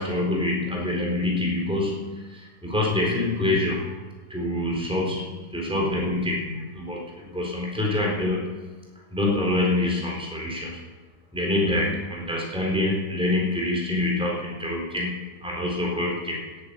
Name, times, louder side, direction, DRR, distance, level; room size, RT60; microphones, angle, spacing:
voice 1, 0.0-3.9 4.3-5.2 5.5-8.6 9.1-10.8 11.3-16.4, left 2 dB, 5° right, -2 dB, 4.1 m, -26 dB
17.5 x 10.0 x 7.0 m, 1.3 s
omnidirectional pair, 1.9 m